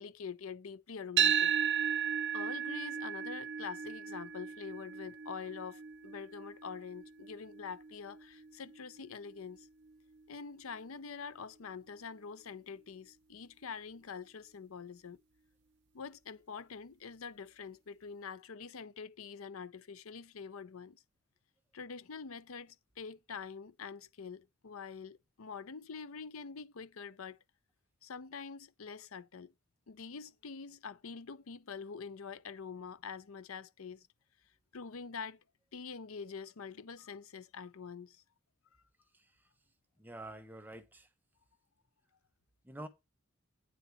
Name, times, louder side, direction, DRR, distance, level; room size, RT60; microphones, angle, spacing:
voice 1, 0.0-1.5 2.3-9.7 10.3-15.2 15.9-21.0 21.7-27.4 28.0-29.5 29.9-34.1 34.7-35.4 35.7-38.2, left 5 dB, 80° left, 0.6 m, -45 dB
sound 1, 1.2-9.3, right 8 dB, 55° right, 0.5 m, -35 dB
voice 2, 40.0-41.1 42.6-42.9, right 1 dB, 10° right, 0.8 m, -47 dB
9.3 x 3.9 x 7.0 m
head